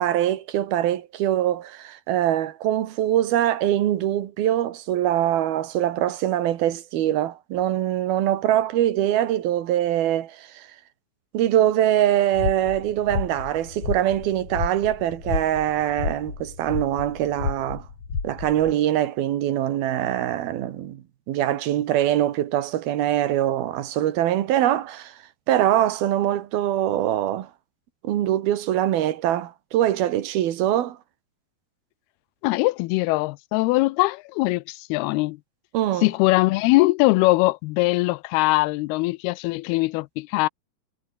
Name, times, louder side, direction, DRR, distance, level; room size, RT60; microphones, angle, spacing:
voice 1, 0.0-10.7 11.3-17.9 18.2-25.2 25.5-27.5 28.0-31.0 35.7-36.1, right 12 dB, 75° right, 3.4 m, -23 dB
sound 1, 12.3-18.7, left 5 dB, 40° left, 4.2 m, -31 dB
voice 2, 32.4-35.4 36.0-40.5, left 21 dB, 90° left, 2.6 m, -21 dB
omnidirectional pair, 4.4 m